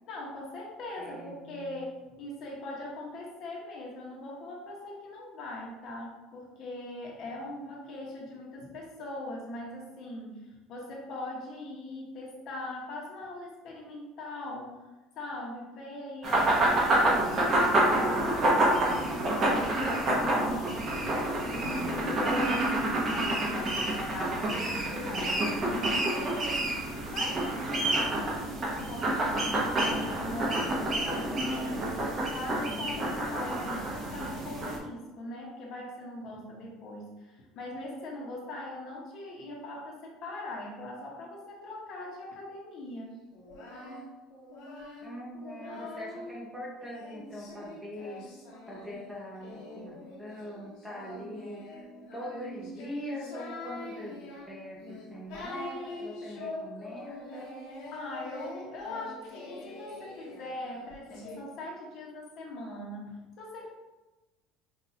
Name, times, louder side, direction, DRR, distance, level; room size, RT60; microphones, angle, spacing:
voice 1, 0.1-14.9 15.2-22.8 23.1-26.6 27.1-29.4 29.7-43.1 57.9-63.7, left 1 dB, 50° left, -2 dB, 1.0 m, -41 dB
voice 2, 1.0-1.9 33.6-34.2 45.0-48.3 48.7-51.9 52.1-57.5, equal, 5° right, -4 dB, 0.8 m, -42 dB
sound 1, 16.2-34.8, right 1 dB, 30° right, 0.9 m, -28 dB
Singing, 43.3-46.3 46.9-61.4, left 2 dB, 70° left, 1.1 m, -44 dB
5.5 x 2.5 x 2.8 m, 1.1 s
cardioid pair, 150°, 0 cm